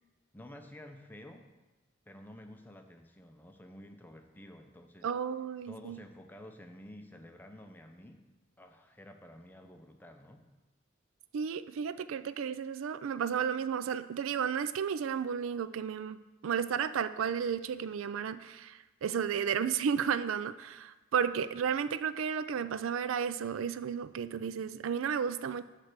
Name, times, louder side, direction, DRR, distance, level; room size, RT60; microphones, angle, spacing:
voice 1, 0.3-1.5 2.1-5.1 5.7-8.3 8.6-10.4, left 1 dB, 10° left, 5 dB, 0.5 m, -51 dB
voice 2, 5.0-6.0 11.3-25.6, right 7 dB, 85° right, 14 dB, 0.4 m, -33 dB
8.6 x 3.3 x 6.6 m, 1.1 s
head